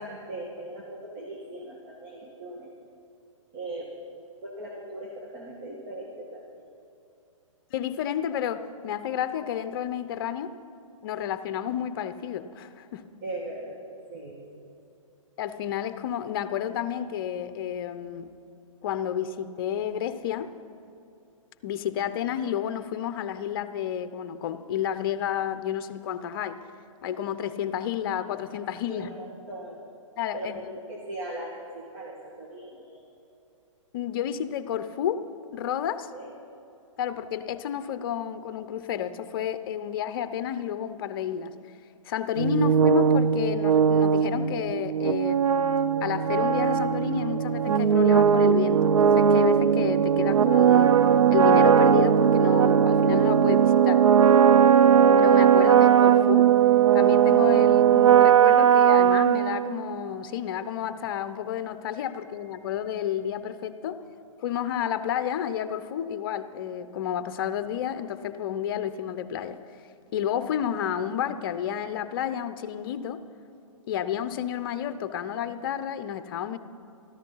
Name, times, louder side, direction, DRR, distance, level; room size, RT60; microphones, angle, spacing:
voice 1, 0.0-2.7 3.5-6.6 13.2-13.8 14.1-14.6 28.8-29.8 30.3-33.1 36.1-36.3 62.1-62.7, right 1 dB, 35° right, -2 dB, 1.9 m, -39 dB
voice 2, 7.7-10.5 11.0-13.1 15.4-18.3 18.8-20.5 21.6-26.6 27.0-29.1 30.2-30.6 33.9-35.2 35.5-36.1 37.0-41.5 42.1-45.4 46.0-50.9 51.3-54.1 55.2-56.5 56.9-64.0 64.4-69.6 70.1-73.2 73.9-76.6, left 9 dB, 45° left, 12 dB, 0.7 m, -31 dB
sound 1, 42.4-60.0, right 8 dB, 85° right, 0.5 m, -19 dB
13.5 x 13.5 x 5.6 m, 2.7 s
hypercardioid pair, 140°, 17 cm